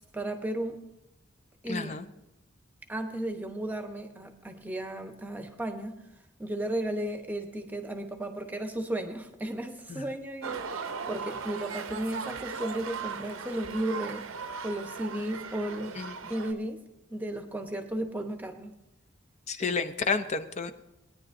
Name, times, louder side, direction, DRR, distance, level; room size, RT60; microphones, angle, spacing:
voice 1, 0.1-0.8 1.6-2.1 2.9-6.0 6.4-16.8 17.1-18.8, right 1 dB, 10° right, 5 dB, 0.9 m, -34 dB
voice 2, 1.7-2.0 9.9-10.0 16.0-16.1 19.5-20.7, left 4 dB, 35° left, 9 dB, 0.5 m, -30 dB
sound 1, 10.4-16.5, right 5 dB, 85° right, 0.7 m, -38 dB
20.0 x 9.9 x 2.6 m, 0.93 s
head